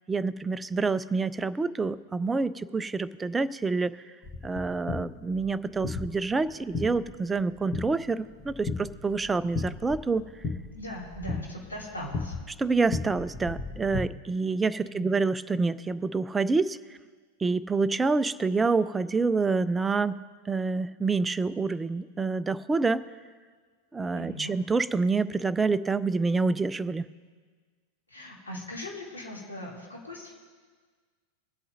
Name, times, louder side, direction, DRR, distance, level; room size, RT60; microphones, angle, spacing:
voice 1, 0.1-4.0 4.4-10.2 12.6-16.8 17.4-20.2 20.5-23.0 23.9-27.1, right 4 dB, 10° right, 15 dB, 0.3 m, -27 dB
sound 1, 4.2-14.0, left 4 dB, 25° left, 1.2 m, -36 dB
voice 2, 10.7-12.4 14.8-15.1 24.1-24.5 28.1-30.3, left 1 dB, 75° left, -3 dB, 2.6 m, -39 dB
23.5 x 8.3 x 2.6 m, 1.5 s
figure-of-eight pair, 90°, 0 cm